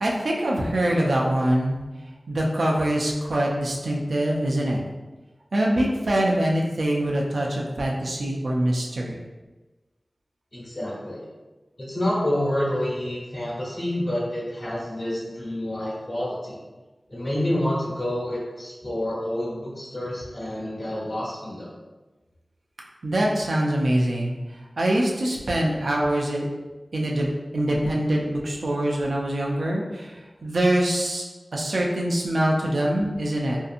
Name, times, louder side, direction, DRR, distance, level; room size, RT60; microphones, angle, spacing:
voice 1, 0.0-1.8 2.3-4.8 5.5-9.1 23.0-24.3 24.8-26.5 26.9-30.1 30.4-31.2 31.5-33.6, right 1 dB, 85° right, -2 dB, 0.4 m, -24 dB
voice 2, 10.5-11.3 11.8-16.6 17.1-21.7, left 1 dB, 55° left, -7 dB, 1.0 m, -28 dB
2.7 x 2.5 x 2.4 m, 1.2 s
wide cardioid pair, 65°, 0 cm